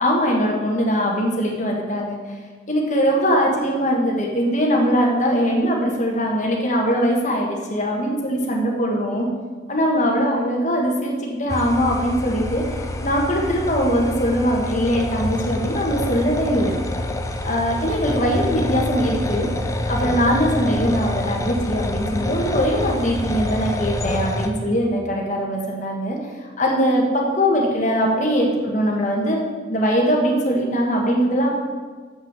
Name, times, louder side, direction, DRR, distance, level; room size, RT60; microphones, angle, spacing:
voice 1, 0.0-2.2 2.7-9.3 9.7-12.6 13.0-16.7 17.4-19.5 19.9-26.2 26.6-29.4 29.7-31.5, equal, 40° left, -1 dB, 1.5 m, -21 dB
sound 1, 11.5-24.5, left 1 dB, 15° left, 0.5 m, -27 dB
7.3 x 6.1 x 7.4 m, 1.5 s
head